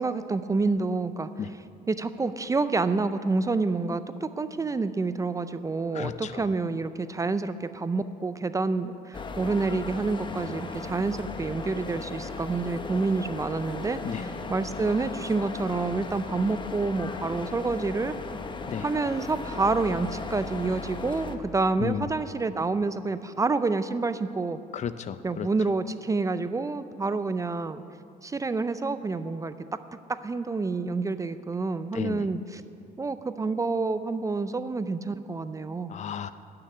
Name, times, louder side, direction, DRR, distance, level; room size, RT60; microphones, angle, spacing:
voice 1, 0.0-1.3 1.9-18.2 18.8-24.6 25.2-27.8 28.2-29.5 30.1-32.6 33.0-35.9, right 3 dB, 20° right, 12 dB, 0.5 m, -28 dB
voice 2, 5.9-6.5 14.0-14.3 18.7-18.9 21.8-22.1 24.7-25.5 31.9-32.3 35.9-36.3, left 8 dB, 45° left, 13 dB, 0.5 m, -33 dB
sound 1, 9.1-21.4, left 4 dB, 30° left, 0.9 m, -37 dB
12.5 x 6.8 x 9.6 m, 2.5 s
cardioid pair, 110°, 17 cm